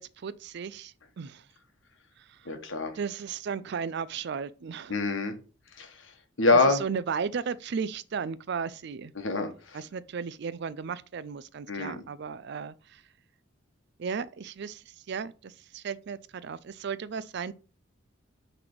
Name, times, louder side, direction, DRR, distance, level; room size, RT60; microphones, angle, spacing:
voice 1, 0.0-1.4 3.0-4.9 6.5-9.1 9.7-13.0 14.0-17.5, right 6 dB, 60° right, 0.4 m, -35 dB
voice 2, 2.4-2.9 4.9-5.3 5.8-6.0 6.4-6.8 9.1-9.8 11.7-12.0, left 3 dB, 70° left, 1.3 m, -25 dB
6.0 x 3.4 x 5.9 m
head